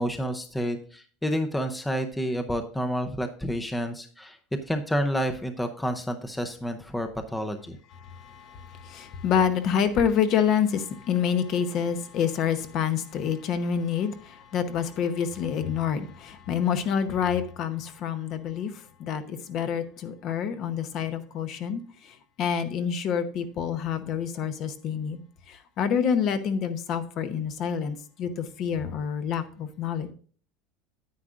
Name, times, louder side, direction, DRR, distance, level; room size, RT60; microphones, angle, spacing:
voice 1, 0.0-4.4 4.7-7.8, equal, 5° left, 0.6 m, -29 dB
voice 2, 8.0-25.2 25.5-30.1, left 7 dB, 40° left, 0.9 m, -27 dB
9.6 x 9.2 x 2.5 m
cardioid pair, 160°, 0 cm